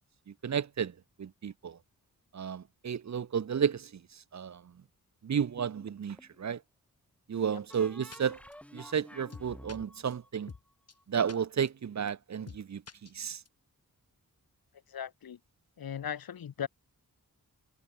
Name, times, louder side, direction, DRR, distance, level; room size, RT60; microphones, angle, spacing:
voice 1, 0.4-1.8 2.3-4.6 5.2-6.6 7.3-8.4 8.7-10.5 11.1-12.8 13.1-13.4, right 7 dB, 50° right, 0.7 m, -32 dB
sound 1, 5.6-6.4 7.7-11.3, equal, 5° left, 3.1 m, -51 dB
sound 2, 7.7-7.8 8.1-8.2 8.5-8.6 8.9-9.0 9.3-9.8 10.1-10.2 10.5-10.6 10.9-11.0 11.3-11.4 11.7-11.8 12.1-12.2 12.5-12.6 12.9-13.5, left 5 dB, 45° left, 1.8 m, -47 dB
voice 2, 14.9-15.4 15.8-16.7, left 9 dB, 85° left, 1.0 m, -38 dB
wide cardioid pair, 80°, 35 cm